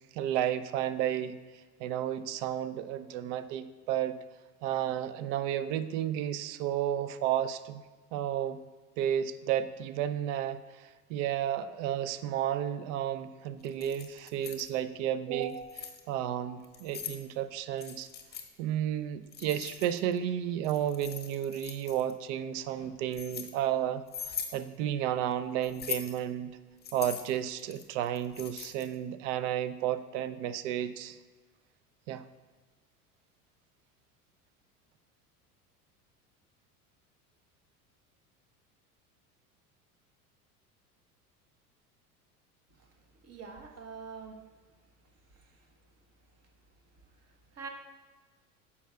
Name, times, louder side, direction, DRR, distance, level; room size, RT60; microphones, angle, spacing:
voice 1, 0.1-1.4 1.8-4.2 4.6-7.8 8.1-8.6 9.0-18.1 18.6-26.6 26.9-31.2 32.1-32.2, right 10 dB, 55° right, 12 dB, 0.5 m, -32 dB
Keys jangling, 13.6-14.7 15.4-16.0 16.6-17.2 17.8-18.5 19.3-20.2 20.6-22.1 22.8-23.5 24.1-24.6 25.6-26.2 26.8-29.0, left 7 dB, 20° left, 0.9 m, -41 dB
voice 2, 43.2-44.4 45.3-45.7 47.2-47.7, right 5 dB, 35° right, 4 dB, 1.1 m, -45 dB
9.7 x 6.9 x 2.2 m, 1.4 s
hypercardioid pair, 75°, 45 cm